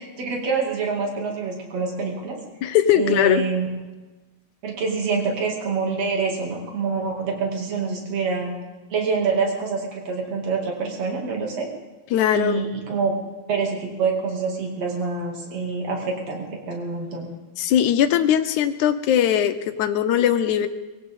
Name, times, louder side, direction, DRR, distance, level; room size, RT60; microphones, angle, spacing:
voice 1, 0.0-2.4 2.9-3.7 4.6-8.5 8.9-11.7 12.3-13.1 13.5-17.3, right 5 dB, 60° right, 0 dB, 3.7 m, -26 dB
voice 2, 2.6-3.4 12.1-12.6 17.6-20.7, left 10 dB, 80° left, 10 dB, 2.2 m, -20 dB
22.0 x 17.0 x 3.8 m, 1.2 s
omnidirectional pair, 3.5 m